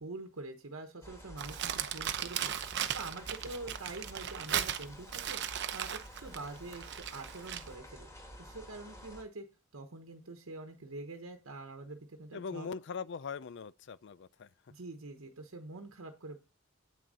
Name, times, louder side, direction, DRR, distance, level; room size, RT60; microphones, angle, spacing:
voice 1, 0.0-2.5 2.9-8.1 8.4-9.5 9.7-12.7 14.7-16.4, right 2 dB, 90° right, 1.1 m, -45 dB
sound 1, 1.0-9.2, equal, 15° left, 2.4 m, -51 dB
Crumpling crinkling, 1.4-7.7, right 9 dB, 60° right, 0.7 m, -37 dB
voice 2, 12.3-14.7, left 5 dB, 60° left, 0.4 m, -41 dB
8.5 x 6.2 x 4.1 m
head